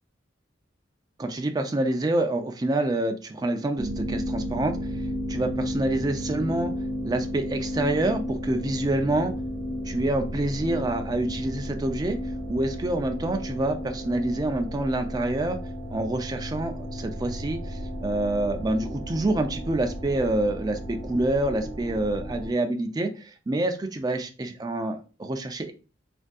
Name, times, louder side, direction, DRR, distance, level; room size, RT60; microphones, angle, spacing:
voice 1, 1.2-5.0 5.3-6.7 7.0-9.3 9.8-12.2 12.5-15.6 15.9-25.7, right 1 dB, 20° right, 5 dB, 0.3 m, -27 dB
sound 1, 3.8-22.5, equal, 15° left, 1.0 m, -33 dB
3.5 x 2.6 x 2.2 m, 0.34 s
head